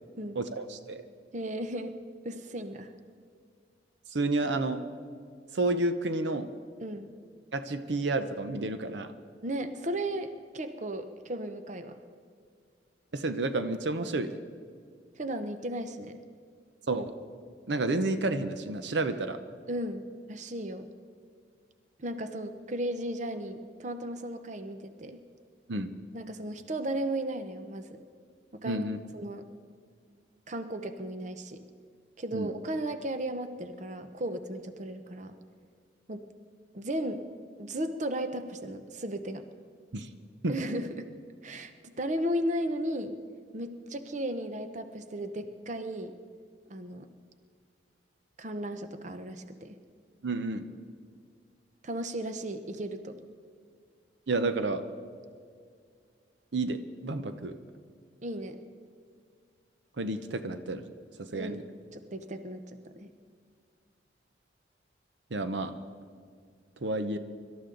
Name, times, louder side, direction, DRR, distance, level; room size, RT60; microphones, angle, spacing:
voice 1, 0.4-1.0 4.1-4.8 5.5-6.5 7.5-9.1 13.1-14.3 16.9-17.1 17.7-19.4 25.7-25.9 28.6-29.0 32.3-32.5 39.9-40.1 40.4-40.5 50.2-50.7 54.3-54.8 56.5-57.5 60.0-60.8 61.2-61.6 65.3-65.7 66.8-67.2, right 2 dB, 85° right, 9 dB, 0.8 m, -30 dB
voice 2, 1.3-1.9 2.2-2.9 6.8-7.1 9.4-12.0 15.1-16.2 19.7-20.0 20.3-20.9 22.0-25.2 26.1-28.0 28.5-28.9 29.1-29.4 30.5-31.6 32.2-35.3 36.1-36.3 36.7-37.2 37.6-39.4 40.5-41.1 41.4-43.2 43.5-46.1 46.7-47.1 48.4-49.8 51.8-53.2 58.2-58.6 61.3-63.1, right 1 dB, 45° right, 9 dB, 0.8 m, -35 dB
24.5 x 13.0 x 3.9 m, 2.1 s
head